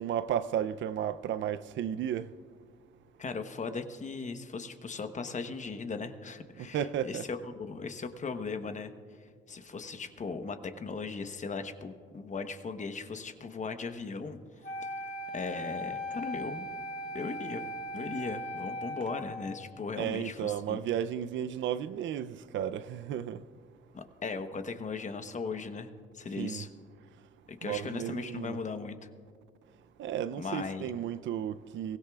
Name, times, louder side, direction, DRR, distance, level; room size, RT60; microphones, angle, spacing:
voice 1, 0.0-2.3 6.7-7.3 20.0-23.4 26.4-26.7 27.6-28.6 30.0-32.0, right 10 dB, 70° right, 0.5 m, -33 dB
voice 2, 3.2-8.9 9.2-14.4 15.3-16.7 17.1-17.7 17.9-20.8 23.9-26.7 27.5-29.0 30.4-30.9, left 4 dB, 40° left, 1.0 m, -38 dB
Wind instrument woodwind instrument, 14.6-19.7, equal, 55° left, 1.7 m, -38 dB
23.0 x 16.5 x 2.4 m
cardioid pair, 90°, 20 cm